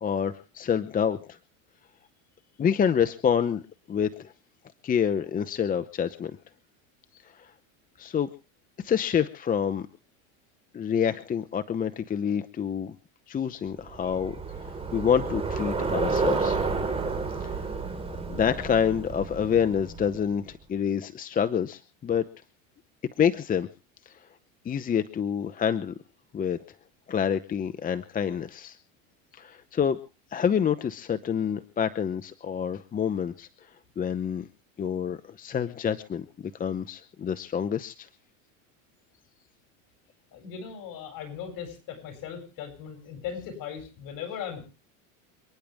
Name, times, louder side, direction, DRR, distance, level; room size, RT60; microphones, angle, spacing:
voice 1, 0.0-1.4 2.6-3.6 3.9-4.3 4.8-6.3 7.3-7.5 8.0-8.3 8.8-9.9 10.7-12.9 13.3-16.6 17.4-17.7 18.3-22.2 23.2-23.7 24.1-24.2 24.6-25.9 26.3-26.6 27.1-28.8 29.3-30.0 30.3-33.5 34.0-34.5 34.8-36.2 36.6-38.1, left 8 dB, 20° left, 10 dB, 0.8 m, -27 dB
Bicycle, 13.8-20.3, right 4 dB, 15° right, 4.3 m, -30 dB
voice 2, 40.3-44.6, left 8 dB, 55° left, 5 dB, 7.9 m, -38 dB
28.5 x 10.5 x 3.5 m, 0.33 s
supercardioid pair, 125°, 40 cm